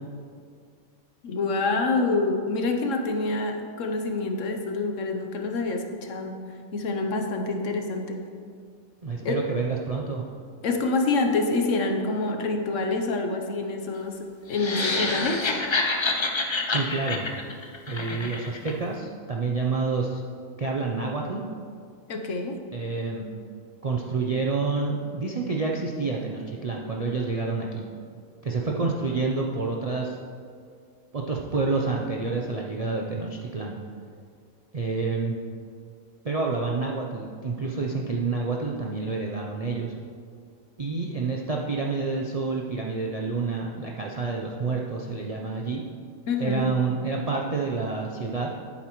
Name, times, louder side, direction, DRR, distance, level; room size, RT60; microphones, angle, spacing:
voice 1, 1.2-6.4 6.7-8.3 9.2-9.4 10.6-15.5 22.1-22.6 46.3-46.7, left 3 dB, 65° left, 4 dB, 1.1 m, -27 dB
voice 2, 9.0-10.2 16.7-17.3 17.9-20.2 20.6-21.5 22.7-23.2 23.8-27.8 28.4-30.2 31.1-33.7 34.7-35.4 36.2-39.9 40.8-45.8 46.4-48.5, right 4 dB, 45° right, -2 dB, 0.4 m, -28 dB
sound 1, 14.5-18.7, left 3 dB, 50° left, 0.3 m, -27 dB
11.0 x 8.4 x 3.1 m, 2.2 s
omnidirectional pair, 1.5 m